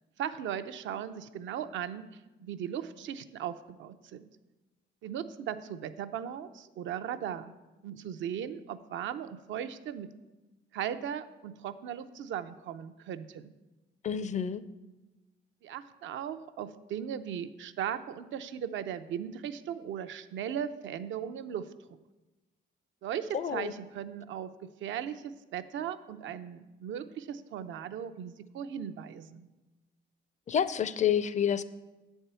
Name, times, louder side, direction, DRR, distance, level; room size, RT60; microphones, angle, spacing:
voice 1, 0.2-4.3 5.0-7.5 7.8-10.1 10.7-13.5 15.6-21.7 23.0-24.5 24.8-29.5, right 9 dB, 75° right, 10 dB, 0.5 m, -37 dB
voice 2, 14.0-14.6 23.3-23.7 30.5-31.6, left 8 dB, 35° left, 15 dB, 0.4 m, -28 dB
8.1 x 4.5 x 6.7 m, 1.1 s
cardioid pair, 90°, 20 cm